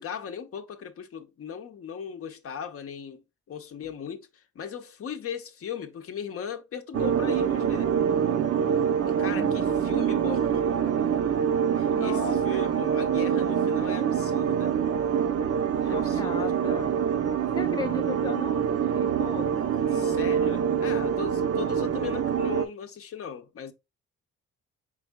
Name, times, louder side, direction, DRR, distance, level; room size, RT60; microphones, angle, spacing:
voice 1, 0.0-7.9 9.1-11.0 11.8-14.8 15.8-16.9 19.9-23.7, left 7 dB, 50° left, 0.7 m, -38 dB
sound 1, 6.9-22.7, right 8 dB, 50° right, 0.6 m, -25 dB
voice 2, 9.3-9.7 11.9-12.9 15.8-16.9 17.5-20.3, left 5 dB, 15° left, 0.5 m, -37 dB
4.7 x 3.5 x 2.2 m
cardioid pair, 90°, 30 cm